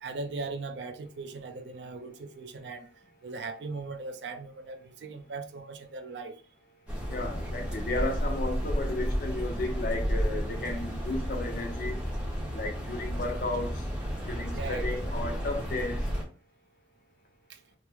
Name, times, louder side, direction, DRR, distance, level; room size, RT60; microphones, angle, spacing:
voice 1, 0.0-2.9 3.2-6.4 14.5-14.9, right 3 dB, 80° right, 0.4 m, -39 dB
sound 1, 6.9-16.2, equal, 5° right, 0.9 m, -32 dB
voice 2, 7.1-12.0 12.5-13.9 14.3-16.1, left 2 dB, 55° left, 0.7 m, -34 dB
3.0 x 2.0 x 3.4 m
head